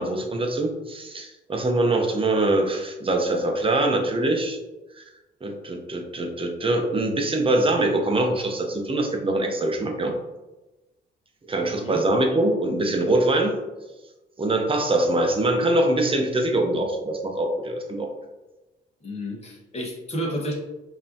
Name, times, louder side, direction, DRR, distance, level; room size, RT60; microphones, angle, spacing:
voice 1, 0.0-4.6 5.0-5.1 5.4-10.1 11.5-13.5 14.4-18.1, right 2 dB, 25° right, 3 dB, 0.8 m, -23 dB
voice 2, 11.6-12.0 19.0-20.6, equal, 30° left, -3 dB, 1.5 m, -31 dB
5.3 x 2.9 x 2.8 m, 1.1 s
cardioid pair, 90°, 20 cm